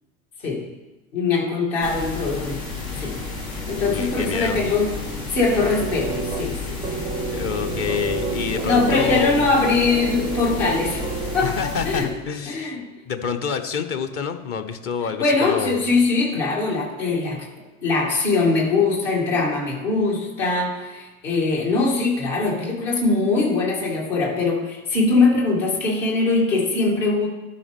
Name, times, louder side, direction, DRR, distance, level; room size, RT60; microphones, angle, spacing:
voice 1, 1.1-2.6 2.9-3.2 3.5-4.9 5.3-7.0 8.6-11.0 11.3-12.1 12.5-12.9 15.2-17.5 17.8-27.3, left 3 dB, 65° left, -3 dB, 2.7 m, -22 dB
sound 1, 1.8-12.1, left 4 dB, 80° left, 2.0 m, -32 dB
voice 2, 3.8-4.6 7.3-9.5 11.4-12.8 13.1-15.9, left 6 dB, 35° left, 7 dB, 0.8 m, -28 dB
sound 2, 5.8-11.8, right 5 dB, 15° right, 0.4 m, -31 dB
12.5 x 5.1 x 3.5 m, 1.1 s
figure-of-eight pair, 75°, 42 cm